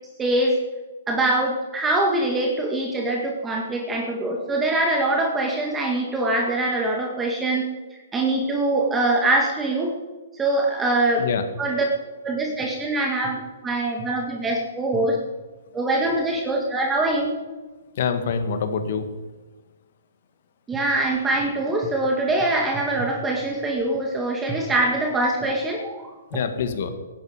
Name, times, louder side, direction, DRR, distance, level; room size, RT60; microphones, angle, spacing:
voice 1, 0.2-0.6 1.1-9.9 10.3-11.3 11.6-11.9 12.2-15.2 15.7-17.3 20.7-26.1, right 2 dB, 15° right, 0 dB, 1.9 m, -23 dB
voice 2, 18.0-19.1 26.3-26.9, left 6 dB, 60° left, 8 dB, 2.0 m, -25 dB
17.0 x 11.0 x 5.2 m, 1.3 s
hypercardioid pair, 140°, 0 cm